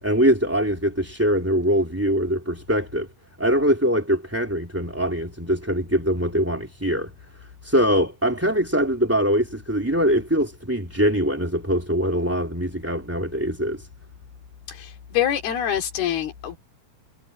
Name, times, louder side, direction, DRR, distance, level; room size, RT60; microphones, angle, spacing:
voice 1, 0.0-3.1 3.4-7.1 7.4-13.8, equal, 5° right, 2.7 m, -23 dB
voice 2, 14.7-16.6, left 10 dB, 90° left, 4.8 m, -25 dB
omnidirectional pair, 4.3 m